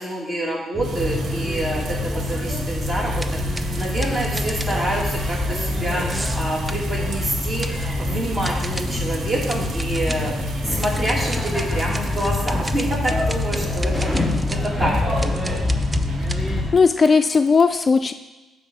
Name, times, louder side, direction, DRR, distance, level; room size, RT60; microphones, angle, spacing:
voice 1, 0.0-14.1 14.5-15.6, right 1 dB, 35° right, -3 dB, 2.7 m, -27 dB
Spaceshuttle boarding door closes, 0.7-16.7, left 2 dB, ahead, 2.7 m, -25 dB
sound 1, 0.8-17.3, right 4 dB, 70° right, 0.9 m, -40 dB
sound 2, 3.2-5.0 6.1-6.9 7.6-8.0 8.4-9.0 9.5-10.4 10.8-16.4, right 1 dB, 20° right, 0.6 m, -35 dB
voice 2, 16.4-18.1, left 5 dB, 35° left, 9 dB, 0.4 m, -17 dB
9.2 x 4.2 x 6.2 m, 1.1 s
cardioid pair, 90°, 0 cm